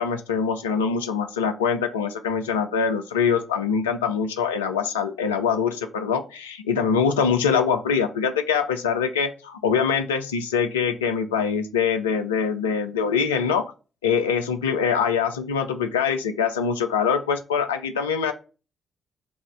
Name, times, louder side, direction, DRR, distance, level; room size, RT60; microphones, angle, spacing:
voice 1, 0.0-13.7 14.0-18.3, left 6 dB, 85° left, 7 dB, 0.4 m, -24 dB
6.1 x 2.4 x 3.3 m, 0.33 s
figure-of-eight pair, 40°, 0 cm